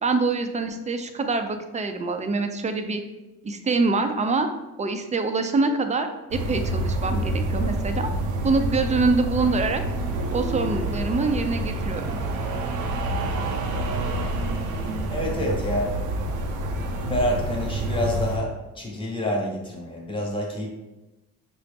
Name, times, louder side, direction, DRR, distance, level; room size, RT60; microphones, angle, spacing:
voice 1, 0.0-3.0 3.4-4.5 4.8-8.1 8.4-9.8 10.3-12.1, right 3 dB, 25° right, 7 dB, 0.4 m, -25 dB
sound 1, 6.3-18.4, right 1 dB, 90° right, 0.6 m, -27 dB
voice 2, 15.1-16.0 17.0-20.7, left 1 dB, 15° left, -1 dB, 1.1 m, -28 dB
5.6 x 2.0 x 3.4 m, 1.0 s
cardioid pair, 90°, 30 cm